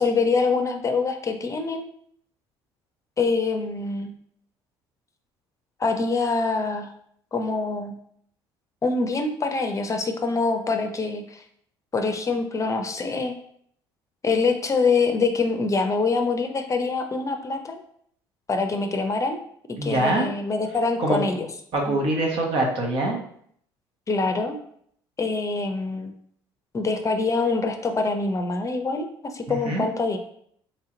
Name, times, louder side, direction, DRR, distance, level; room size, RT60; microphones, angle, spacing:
voice 1, 0.0-1.8 3.2-4.1 5.8-6.9 7.3-7.9 8.8-11.4 11.9-13.3 14.2-17.8 18.5-19.4 19.8-21.5 21.9-22.0 24.1-24.6 25.2-26.1 26.7-30.2, left 4 dB, 30° left, 5 dB, 0.5 m, -25 dB
voice 2, 19.8-20.3 21.0-21.2 21.7-23.2 29.5-29.8, right 1 dB, 60° right, 0 dB, 1.1 m, -24 dB
3.2 x 2.8 x 3.7 m, 0.65 s
supercardioid pair, 70°, 11 cm